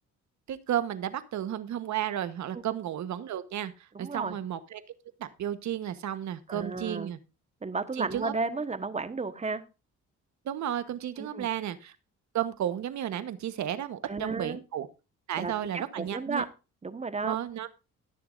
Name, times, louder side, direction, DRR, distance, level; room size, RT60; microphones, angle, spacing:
voice 1, 0.5-3.7 4.0-4.8 5.2-7.2 8.0-8.3 10.4-11.9 12.3-14.9 15.3-16.4 17.2-17.7, right 11 dB, 70° right, 12 dB, 1.2 m, -33 dB
voice 2, 3.9-4.4 6.5-7.1 7.6-9.6 11.2-11.5 14.1-14.6 15.4-16.5 16.8-17.4, right 4 dB, 20° right, 11 dB, 1.3 m, -33 dB
20.0 x 6.8 x 2.6 m, 0.30 s
cardioid pair, 90°, 30 cm